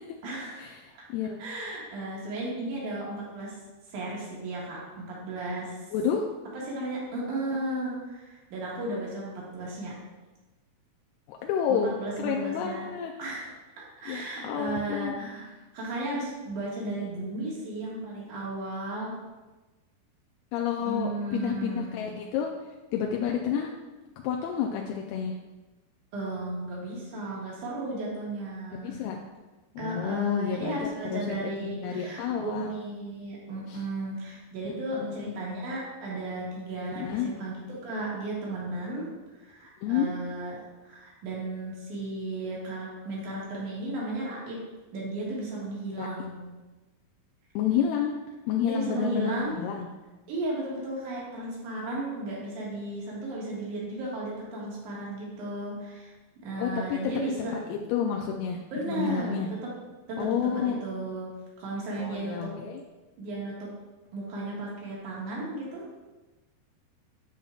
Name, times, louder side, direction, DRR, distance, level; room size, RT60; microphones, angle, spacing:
voice 1, 0.2-0.8 1.4-3.6 3.9-5.8 6.7-9.9 11.7-12.9 13.2-13.5 13.8-19.1 20.8-22.0 26.1-29.0 29.8-39.1 39.4-44.6 44.9-46.5 48.6-49.5 50.3-56.1 56.4-57.5 58.7-59.7 60.1-61.3 61.6-62.5 63.2-63.7 64.1-66.0, right 2 dB, 60° right, -5 dB, 2.9 m, -34 dB
voice 2, 5.9-6.3 11.3-13.1 14.1-15.2 20.5-22.5 22.9-23.7 24.2-25.4 28.8-29.2 29.8-32.8 33.7-33.8 34.7-35.3 36.9-37.3 39.8-40.1 46.0-46.1 47.6-48.1 48.5-49.9 56.6-57.0 57.4-58.6 58.9-59.5 60.2-60.8 62.0-62.8, left 8 dB, 90° left, 1 dB, 2.5 m, -30 dB
9.6 x 5.8 x 2.4 m, 1.2 s
omnidirectional pair, 4.4 m